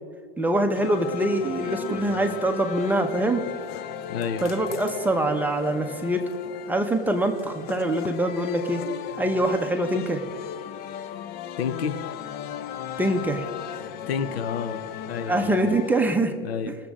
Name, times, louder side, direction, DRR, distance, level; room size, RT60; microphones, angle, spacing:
voice 1, 0.4-3.4 4.4-6.3 6.7-8.8 9.2-10.2 13.0-13.5 15.3-16.3 16.7-16.8, right 1 dB, 5° right, 4 dB, 0.9 m, -24 dB
sound 1, 0.7-16.0, left 10 dB, 35° left, 0.5 m, -36 dB
voice 2, 4.1-4.5 11.6-12.0 14.1-14.8 15.1-15.6 16.4-16.8, left 7 dB, 85° left, 12 dB, 0.8 m, -29 dB
19.5 x 7.3 x 3.7 m, 2.2 s
hypercardioid pair, 115°, 30 cm